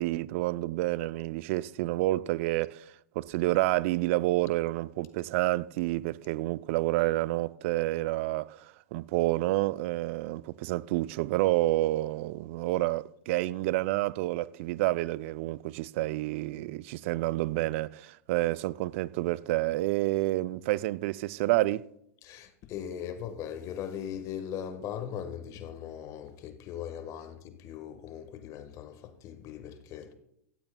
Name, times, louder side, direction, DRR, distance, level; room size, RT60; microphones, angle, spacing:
voice 1, 0.0-2.8 3.2-21.9, right 18 dB, 55° right, 0.4 m, -29 dB
voice 2, 22.2-30.1, left 9 dB, 45° left, 1.4 m, -39 dB
16.5 x 14.5 x 2.2 m
hypercardioid pair, 95°, 8 cm